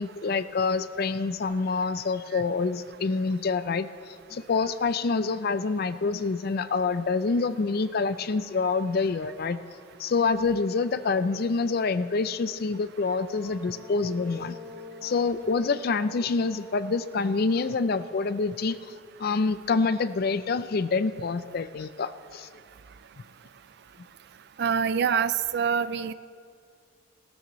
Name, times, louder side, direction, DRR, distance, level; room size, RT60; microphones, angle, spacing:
voice 1, 0.0-9.6 10.0-14.6 15.0-18.8 19.2-22.5, left 4 dB, 45° left, 13 dB, 0.4 m, -27 dB
sound 1, 6.8-6.9 7.3-10.9 12.6-19.9, left 3 dB, ahead, 1.9 m, -49 dB
voice 2, 24.6-26.1, right 7 dB, 50° right, 15 dB, 0.4 m, -25 dB
17.5 x 13.0 x 3.1 m, 2.3 s
head